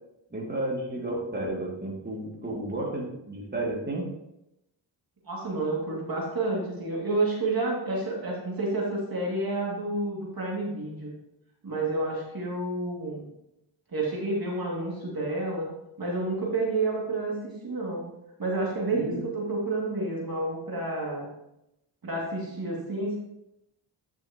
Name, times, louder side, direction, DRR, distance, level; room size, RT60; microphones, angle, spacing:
voice 1, 0.3-4.0 18.9-19.2, right 1 dB, 20° right, -3 dB, 2.5 m, -32 dB
voice 2, 5.3-11.1 11.6-13.3 13.9-15.7 16.0-17.4 17.6-18.1 18.4-21.3 22.0-23.2, right 2 dB, 50° right, -3 dB, 2.4 m, -29 dB
9.7 x 6.3 x 3.0 m, 0.85 s
cardioid pair, 55°, 47 cm